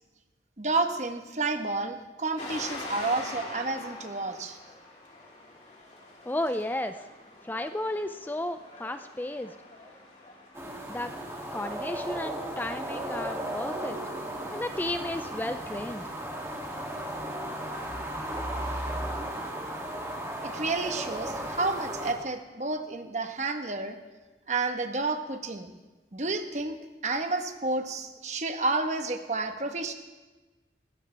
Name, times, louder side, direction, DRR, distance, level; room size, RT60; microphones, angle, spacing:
voice 1, 0.6-4.6 20.4-24.0 24.5-25.7 26.1-29.9, right 3 dB, 40° right, 6 dB, 1.2 m, -30 dB
sound 1, 2.4-17.6, left 2 dB, 40° left, 3.3 m, -46 dB
voice 2, 6.3-7.0 7.4-9.5 10.9-11.1 11.5-14.0 14.5-16.0, left 1 dB, 10° left, 9 dB, 0.4 m, -33 dB
sound 2, 10.5-22.1, right 1 dB, 15° right, 2.4 m, -35 dB
20.0 x 16.5 x 3.4 m, 1.2 s
head